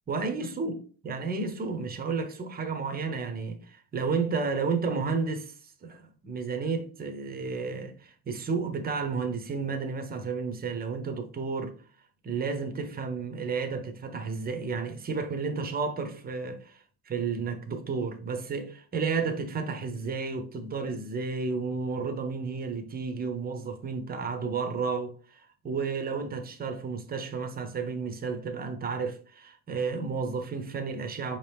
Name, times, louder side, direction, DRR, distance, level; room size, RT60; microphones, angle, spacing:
voice 1, 0.1-5.5 5.8-11.7 12.2-31.4, right 4 dB, 20° right, 0.6 m, -32 dB
5.4 x 2.9 x 3.3 m
cardioid pair, 140°, 49 cm